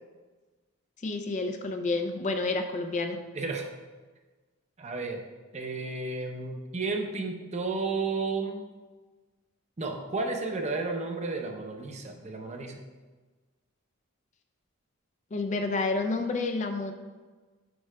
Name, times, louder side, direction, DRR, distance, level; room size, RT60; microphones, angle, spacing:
voice 1, 1.0-3.2 15.3-16.9, left 3 dB, 35° left, 6 dB, 0.3 m, -29 dB
voice 2, 3.3-3.7 4.8-5.2 5.5-8.6 9.8-12.8, right 3 dB, 30° right, 3 dB, 0.6 m, -32 dB
9.4 x 4.5 x 2.2 m, 1.3 s
head